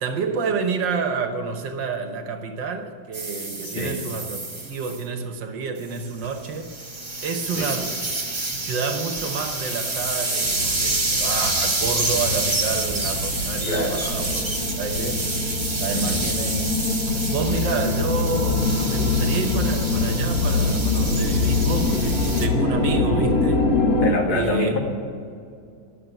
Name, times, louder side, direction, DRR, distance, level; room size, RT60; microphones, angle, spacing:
voice 1, 0.0-6.8 7.2-7.9 8.6-15.4 15.8-16.7 17.1-23.7 24.3-24.7, right 5 dB, 65° right, 1.6 m, -29 dB
sound 1, 3.1-5.0 5.8-22.5, right 2 dB, 20° right, 0.8 m, -28 dB
voice 2, 3.6-4.0 7.6-7.7 13.6-14.0 16.0-16.3 24.0-24.8, left 2 dB, 85° left, 2.8 m, -26 dB
sound 2, 10.4-24.1, left 3 dB, 50° left, 1.4 m, -24 dB
11.5 x 7.4 x 9.1 m
omnidirectional pair, 2.3 m